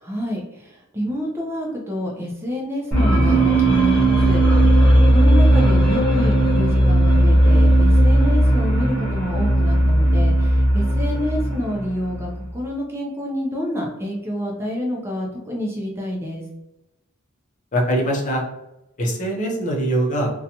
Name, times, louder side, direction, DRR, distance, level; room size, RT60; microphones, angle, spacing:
voice 1, 0.0-4.8 5.1-16.4, equal, 10° right, -2 dB, 0.4 m, -28 dB
sound 1, 2.9-12.5, right 1 dB, 5° left, 0.8 m, -16 dB
voice 2, 17.7-18.4 19.0-20.3, right 1 dB, 35° left, 0 dB, 0.5 m, -22 dB
2.6 x 2.2 x 2.7 m, 0.90 s
head